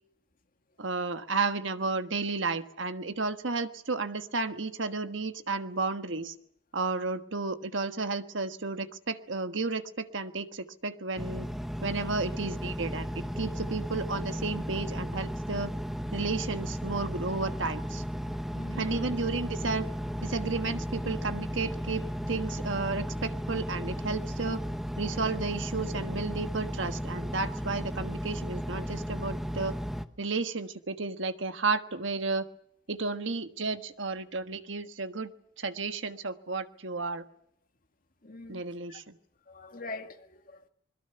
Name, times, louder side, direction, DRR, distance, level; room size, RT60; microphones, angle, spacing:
voice 1, 0.8-6.3 6.7-11.5 11.8-13.1 13.4-15.7 16.1-18.0 18.7-19.9 20.2-24.6 25.0-29.8 30.2-32.5 32.9-35.3 35.6-37.2 38.5-39.2, right 3 dB, 75° right, 1.4 m, -32 dB
Engine, 11.2-30.1, equal, ahead, 0.9 m, -35 dB
voice 2, 18.5-19.2 38.2-38.6 38.9-39.0 39.5-40.7, left 2 dB, 45° left, 2.0 m, -43 dB
25.5 x 21.5 x 6.9 m
head